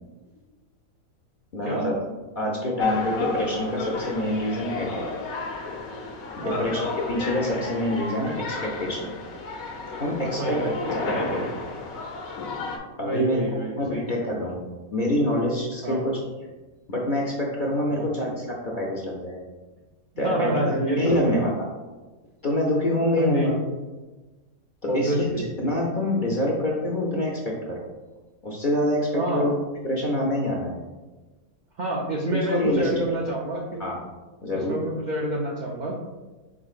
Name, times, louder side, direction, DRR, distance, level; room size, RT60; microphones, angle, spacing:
voice 1, 1.5-2.0 2.4-5.1 6.4-9.1 10.0-11.7 13.0-13.5 13.8-14.7 14.9-16.2 16.9-19.4 20.2-20.5 21.0-21.5 22.4-23.5 24.8-27.9 28.4-29.5 29.8-30.8 32.3-32.9 33.3-33.4 33.8-34.0 34.4-34.8, left 1 dB, 55° left, -3 dB, 0.5 m, -26 dB
sound 1, 2.8-12.8, left 4 dB, 75° left, 1.1 m, -32 dB
voice 2, 10.3-11.5 13.0-14.5 15.8-16.0 17.9-18.1 20.1-21.3 23.2-23.6 24.9-25.4 29.1-29.5 31.8-33.8 34.5-36.0, right 1 dB, 85° right, -2 dB, 0.4 m, -28 dB
5.0 x 3.9 x 2.4 m, 1.2 s
omnidirectional pair, 1.5 m